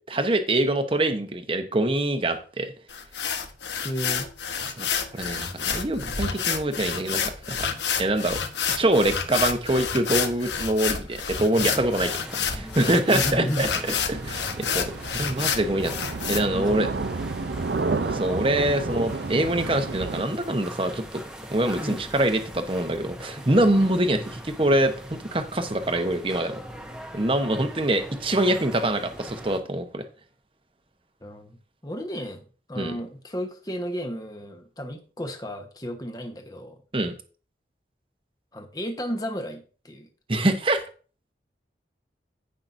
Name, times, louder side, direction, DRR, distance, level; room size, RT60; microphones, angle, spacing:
voice 1, 0.1-2.7 4.8-4.9 5.1-7.6 8.0-8.4 8.8-12.1 12.4-13.7 14.1-15.9 16.3-16.9 18.0-21.2 21.5-26.6 27.1-30.0 32.8-32.9 36.9-37.1 40.3-40.8, right 1 dB, 30° right, 7 dB, 1.0 m, -24 dB
sound 1, 2.9-16.4, left 7 dB, 85° left, 1.1 m, -29 dB
voice 2, 3.8-4.3 13.1-13.7 16.5-16.8 21.8-22.0 31.2-31.6 31.8-36.8 38.5-40.1, equal, 20° left, 5 dB, 1.2 m, -33 dB
sound 2, 11.5-29.6, equal, 5° right, 1.0 m, -41 dB
sound 3, 14.1-20.2, right 3 dB, 75° right, 0.6 m, -31 dB
15.0 x 5.7 x 2.6 m, 0.38 s
head